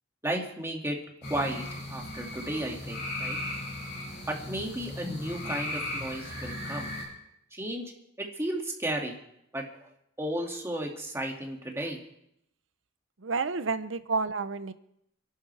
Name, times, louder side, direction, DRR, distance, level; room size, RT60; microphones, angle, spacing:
voice 1, 0.2-1.0 1.3-3.4 4.3-6.9 7.5-7.9 8.2-9.2 9.5-9.6 10.2-12.0, right 1 dB, 15° right, 0 dB, 2.3 m, -33 dB
sound 1, 1.2-7.0, left 1 dB, 60° left, 6.9 m, -37 dB
voice 2, 13.2-14.7, right 4 dB, 75° right, 12 dB, 0.9 m, -30 dB
28.5 x 11.0 x 3.4 m, 0.77 s
head